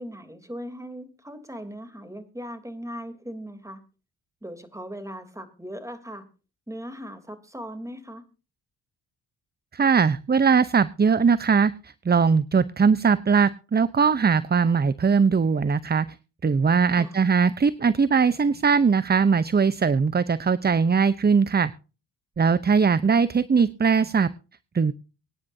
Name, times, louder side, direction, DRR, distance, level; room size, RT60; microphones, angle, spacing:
voice 1, 0.0-3.8 4.4-6.2 6.7-8.2 16.9-17.2, equal, 5° right, 9 dB, 3.1 m, -38 dB
voice 2, 9.7-11.7 12.1-16.1 16.4-21.7 22.4-24.3 24.7-24.9, right 5 dB, 20° right, 17 dB, 0.7 m, -20 dB
24.0 x 9.6 x 2.7 m, 0.34 s
hypercardioid pair, 45°, 45 cm